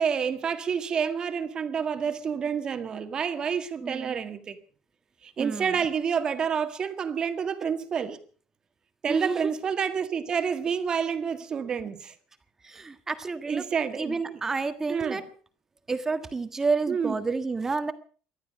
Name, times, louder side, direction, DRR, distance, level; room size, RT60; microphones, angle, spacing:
voice 1, 0.0-4.6 5.2-8.2 9.0-12.1 13.5-14.4 14.9-15.2 16.9-17.2, right 7 dB, 35° right, 1.7 m, -29 dB
voice 2, 3.8-4.2 5.4-5.8 9.1-9.5 12.6-13.7 14.0-15.3 15.9-17.9, right 4 dB, 20° right, 1.5 m, -30 dB
19.0 x 12.0 x 6.3 m
cardioid pair, 125°, 2 cm